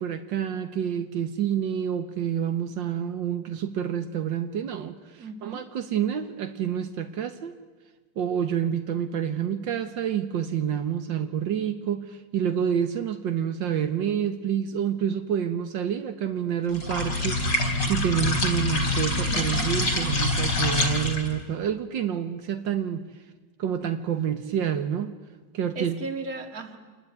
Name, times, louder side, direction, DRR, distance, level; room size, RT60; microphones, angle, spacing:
voice 1, 0.0-7.6 8.2-23.0 23.6-25.1 25.5-26.0, right 9 dB, 80° right, 8 dB, 1.9 m, -28 dB
voice 2, 5.2-5.6 19.3-19.8 25.7-26.8, right 3 dB, 50° right, 7 dB, 2.6 m, -36 dB
sound 1, 16.7-21.4, left 1 dB, 70° left, 4.5 m, -25 dB
27.5 x 21.0 x 9.6 m, 1.4 s
omnidirectional pair, 2.0 m